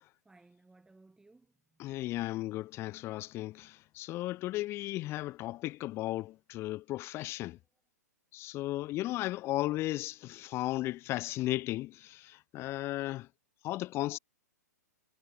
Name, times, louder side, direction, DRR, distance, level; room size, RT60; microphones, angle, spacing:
voice 1, 0.0-2.0 7.6-7.8, right 2 dB, 5° right, 5.4 m, -62 dB
voice 2, 1.8-7.6 8.3-13.3 13.6-14.2, left 17 dB, 25° left, 0.5 m, -35 dB
hypercardioid pair, 120°, 9 cm